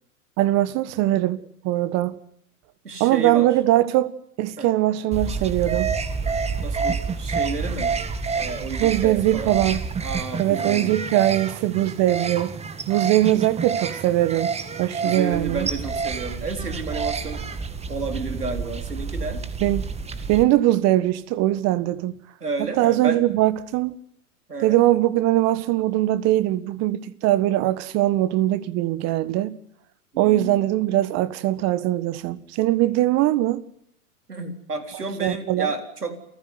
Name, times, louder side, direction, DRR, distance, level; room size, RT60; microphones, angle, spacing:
voice 1, 0.4-2.2 3.0-4.1 4.4-5.9 8.8-9.8 10.4-12.6 12.9-14.5 14.8-15.7 19.6-19.8 20.3-22.2 22.6-23.9 24.6-29.5 30.2-33.6 35.2-35.7, right 15 dB, 35° right, 1.6 m, -21 dB
voice 2, 2.8-3.5 4.6-4.7 6.6-7.9 8.3-9.5 10.0-10.9 15.0-17.4 17.9-19.4 22.4-23.2 24.5-24.8 30.1-30.7 34.3-36.2, right 3 dB, 90° right, 4.0 m, -31 dB
sound 1, 5.1-20.4, right 5 dB, 15° right, 1.8 m, -28 dB
28.5 x 15.5 x 9.5 m
figure-of-eight pair, 105°, 45 cm